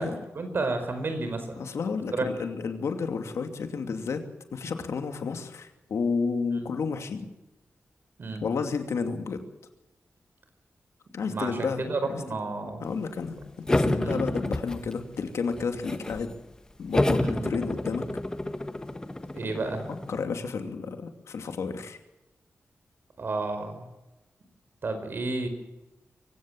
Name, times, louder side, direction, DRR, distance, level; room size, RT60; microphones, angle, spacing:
voice 1, 0.0-1.6 2.1-2.3 8.2-8.4 11.2-12.9 13.9-14.2 17.1-17.4 19.3-19.8 23.2-23.8 24.8-25.5, right 3 dB, 50° right, 7 dB, 4.9 m, -31 dB
voice 2, 1.6-4.2 4.5-7.3 8.4-9.4 11.1-12.2 12.8-13.4 13.7-16.3 16.8-18.1 20.1-22.0, left 5 dB, 85° left, 6 dB, 2.6 m, -31 dB
sound 1, 13.7-15.2 15.5-16.3 16.9-20.2, left 1 dB, 15° left, 1.4 m, -29 dB
24.5 x 17.0 x 7.5 m, 1.0 s
wide cardioid pair, 170°, 5 cm